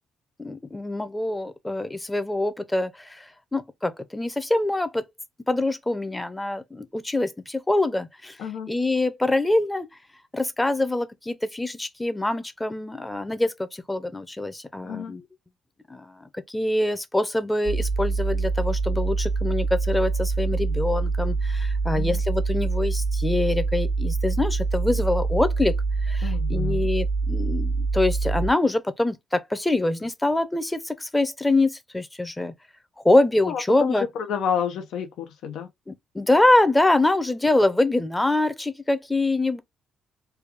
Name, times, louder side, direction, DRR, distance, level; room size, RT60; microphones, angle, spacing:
voice 1, 0.4-5.0 5.5-8.4 8.7-9.9 10.3-15.2 15.9-16.1 16.5-25.7 26.0-32.5 33.0-34.1 35.9-39.6, left 2 dB, 10° left, 0.6 m, -24 dB
voice 2, 8.4-8.7 14.8-15.1 21.9-22.2 26.2-26.8 33.4-35.7, left 7 dB, 80° left, 0.7 m, -29 dB
sound 1, 17.7-28.5, right 4 dB, 45° right, 0.5 m, -25 dB
3.3 x 2.3 x 3.4 m
cardioid pair, 90°, 0 cm